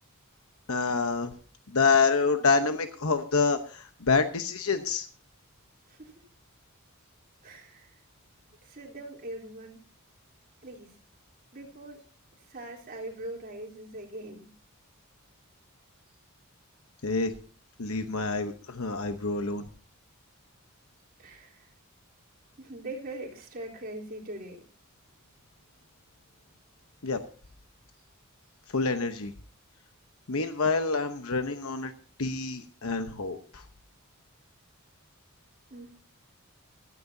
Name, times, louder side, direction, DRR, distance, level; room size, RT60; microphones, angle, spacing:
voice 1, 0.7-1.3 1.7-5.1 17.0-17.3 17.8-19.7 27.0-27.2 28.7-29.3 30.3-31.9 32.2-33.6, left 4 dB, 75° left, 8 dB, 1.0 m, -27 dB
voice 2, 5.9-6.2 7.4-8.0 8.6-9.8 10.6-10.9 11.5-12.0 12.3-14.5 21.2-21.7 22.6-24.6 35.7-35.9, right 1 dB, 40° right, -2 dB, 3.8 m, -42 dB
16.0 x 13.5 x 2.8 m, 0.41 s
head